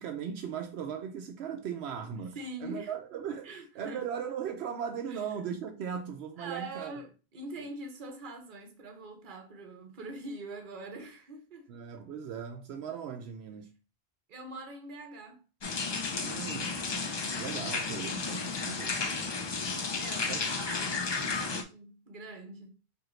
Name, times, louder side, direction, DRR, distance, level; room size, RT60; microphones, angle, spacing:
voice 1, 0.0-7.0 7.6-7.7 11.7-13.7 16.2-16.9 17.3-19.8 20.3-20.6, right 7 dB, 80° right, 0.8 m, -38 dB
voice 2, 2.1-2.9 3.4-4.0 5.1-5.2 6.4-11.7 14.3-15.4 20.0-22.8, right 2 dB, 55° right, 1.0 m, -43 dB
sound 1, 15.6-21.6, left 4 dB, 45° left, 0.3 m, -33 dB
4.8 x 2.7 x 3.1 m
omnidirectional pair, 1.1 m